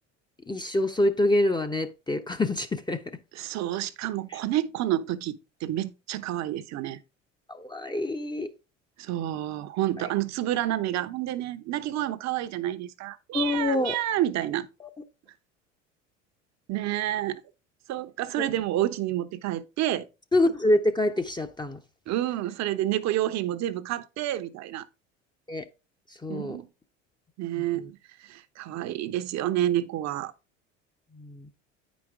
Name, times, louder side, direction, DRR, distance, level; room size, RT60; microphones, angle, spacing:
voice 1, 0.5-3.0 7.5-8.5 10.0-10.1 13.3-14.0 14.8-14.9 20.3-21.8 25.5-25.6 26.2-26.6 27.8-27.9 31.1-31.5, left 1 dB, 10° left, 0.8 m, -26 dB
voice 2, 3.3-7.0 9.0-14.7 16.7-17.4 17.9-20.1 22.1-24.9 26.3-26.7 27.4-30.3, right 13 dB, 45° right, 0.9 m, -29 dB
9.3 x 5.2 x 3.6 m
hypercardioid pair, 65°, 37 cm